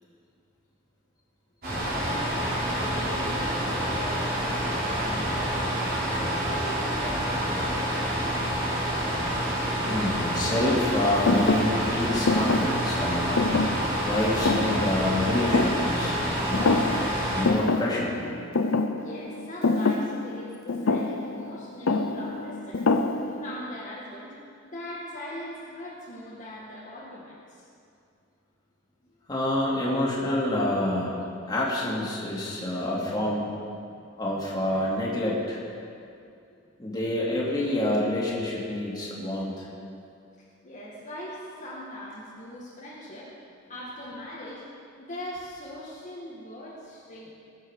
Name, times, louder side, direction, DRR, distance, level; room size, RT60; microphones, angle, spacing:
sound 1, 1.6-17.5, equal, 50° right, 4.2 m, -28 dB
voice 1, 1.7-6.0 6.4-8.1 19.0-22.9 23.4-24.4 24.6-27.7 40.6-43.3 43.7-44.6 45.0-47.3, equal, 40° left, -7 dB, 2.0 m, -40 dB
voice 2, 9.8-13.4 14.0-16.8 17.3-18.2 29.3-31.2 31.5-33.5 34.2-35.6 36.8-39.7, left 1 dB, 20° left, -5 dB, 2.8 m, -27 dB
Thump thud, 11.3-16.3 16.5-17.2 17.4-23.6, left 3 dB, 90° left, 0.7 m, -26 dB
19.5 x 8.9 x 4.9 m, 2.5 s
head